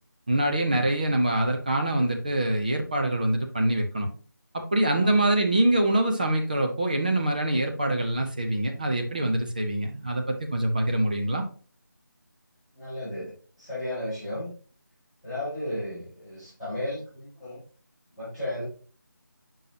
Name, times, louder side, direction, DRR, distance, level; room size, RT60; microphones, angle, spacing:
voice 1, 0.3-4.1 4.5-11.5, right 1 dB, 25° right, 3 dB, 0.7 m, -25 dB
voice 2, 4.9-5.3 12.7-14.5 15.2-17.6 18.1-18.6, left 1 dB, 10° right, -15 dB, 3.1 m, -34 dB
6.9 x 5.5 x 2.8 m, 0.40 s
figure-of-eight pair, 175°, 11 cm